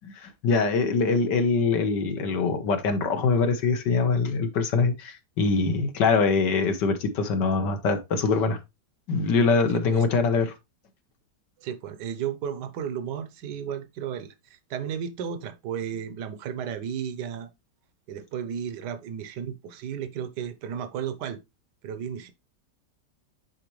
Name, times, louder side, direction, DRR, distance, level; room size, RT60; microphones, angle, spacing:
voice 1, 0.0-8.6 9.1-10.5, left 4 dB, 75° left, 1.7 m, -23 dB
voice 2, 9.7-10.0 11.6-17.5 18.1-21.4 21.8-22.3, right 8 dB, 75° right, 1.4 m, -34 dB
9.8 x 4.3 x 3.1 m
omnidirectional pair, 1.9 m